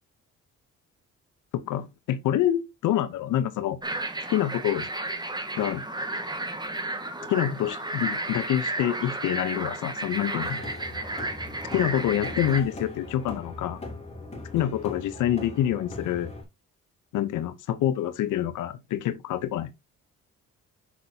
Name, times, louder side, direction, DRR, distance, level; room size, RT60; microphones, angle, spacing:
voice 1, 1.5-3.8 4.3-4.9 5.6-5.8 7.3-10.6 11.7-13.8 14.5-16.3 17.1-19.7, left 11 dB, 85° left, 0.9 m, -27 dB
sound 1, 3.8-12.6, right 2 dB, 15° right, 1.3 m, -33 dB
sound 2, 10.4-16.4, left 2 dB, 20° left, 3.1 m, -40 dB
7.2 x 6.1 x 2.8 m
cardioid pair, 90°, 30 cm